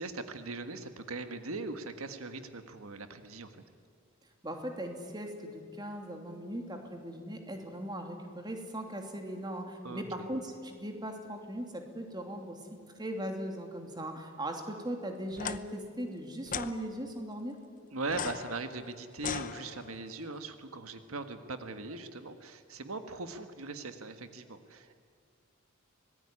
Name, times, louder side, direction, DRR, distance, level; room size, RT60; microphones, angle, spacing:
voice 1, 0.0-3.5 9.8-10.0 17.9-25.0, right 3 dB, 85° right, 8 dB, 1.6 m, -40 dB
voice 2, 4.4-12.6 13.0-17.5, right 1 dB, 20° right, 4 dB, 2.9 m, -39 dB
sound 1, 15.3-15.6 16.5-16.7 18.1-20.1, left 7 dB, 40° left, 0.8 m, -38 dB
25.5 x 19.5 x 9.9 m, 2.2 s
head